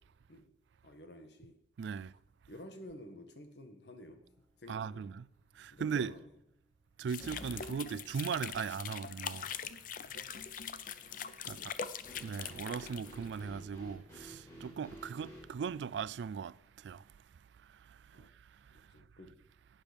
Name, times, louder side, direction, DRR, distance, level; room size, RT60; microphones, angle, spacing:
voice 1, 0.8-1.6 2.5-4.2 4.6-5.1 5.7-6.3 7.2-7.3 11.5-12.0 12.3-12.6 18.1-18.3 18.7-19.4, left 1 dB, 70° left, 1.5 m, -52 dB
voice 2, 1.8-2.1 4.7-5.2 5.6-6.1 7.0-9.8 11.1-11.7 12.2-17.1 17.8-18.3, right 6 dB, 80° right, 0.3 m, -39 dB
sound 1, 4.1-4.5 4.9-5.0 7.2-7.7 12.0-15.4, equal, 15° left, 4.4 m, -51 dB
sound 2, 7.1-13.4, left 7 dB, 50° left, 0.6 m, -43 dB
12.0 x 9.1 x 5.1 m
head